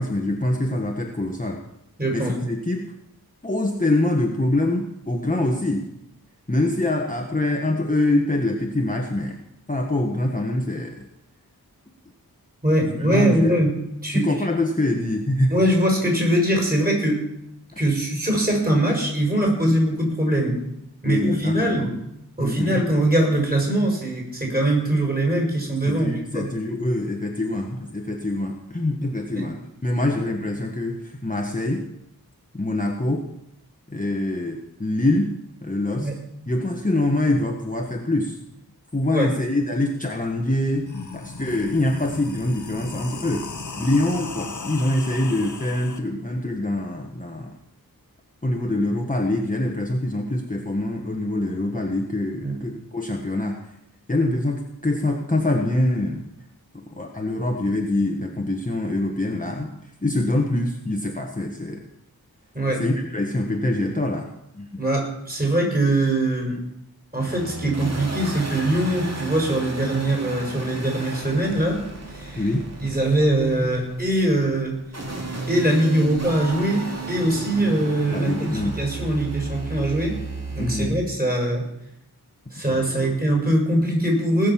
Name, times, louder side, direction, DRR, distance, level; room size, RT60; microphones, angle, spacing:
voice 1, 0.0-1.6 2.1-2.9 3.4-5.9 6.5-9.4 9.7-11.1 12.8-13.6 14.1-15.5 19.6-19.7 21.0-21.9 22.4-22.8 25.8-31.9 32.5-33.3 33.9-35.3 35.6-36.1 36.5-38.4 38.9-43.5 43.8-47.5 48.4-53.6 54.1-56.2 56.7-61.8 62.7-64.3 64.5-64.8 72.4-72.7 78.1-78.8 80.6-81.0 82.8-83.1, left 1 dB, 20° left, 1 dB, 1.5 m, -24 dB
voice 2, 2.0-2.3 12.6-14.3 15.5-17.3 17.8-20.6 21.0-21.9 22.4-26.5 29.3-29.4 36.0-36.2 39.0-39.3 52.4-52.6 62.5-62.8 64.8-66.6 67.1-71.8 72.1-72.5 72.8-74.7 75.5-76.8 77.1-80.1 80.5-81.6 82.5-84.5, right 1 dB, 25° right, 0 dB, 6.5 m, -22 dB
sound 1, 40.8-46.0, left 4 dB, 55° left, 1.5 m, -36 dB
sound 2, 67.2-80.9, right 3 dB, 45° right, 2.9 m, -34 dB
19.0 x 6.6 x 7.6 m, 0.81 s
wide cardioid pair, 65°, 37 cm